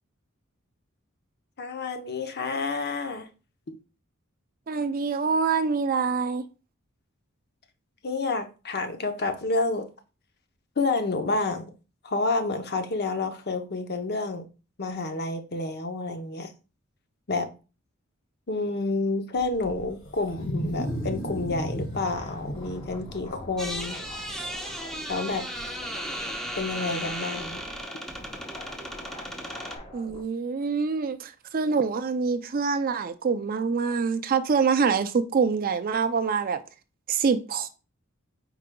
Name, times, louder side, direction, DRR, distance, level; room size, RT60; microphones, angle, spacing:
voice 1, 1.6-3.3 8.0-9.8 10.8-11.7 12.0-14.5 14.8-16.5 17.3-17.5 18.5-24.0 25.1-25.5 26.6-27.6, left 3 dB, 50° left, 0.8 m, -29 dB
voice 2, 4.7-6.4 29.9-36.6 37.1-37.7, right 5 dB, 45° right, 0.4 m, -25 dB
Wild animals, 19.4-24.4, equal, 70° left, 1.7 m, -34 dB
sound 1, 21.9-30.2, left 1 dB, 25° left, 0.9 m, -44 dB
sound 2, 23.6-29.8, equal, ahead, 0.7 m, -35 dB
4.8 x 4.8 x 2.2 m
head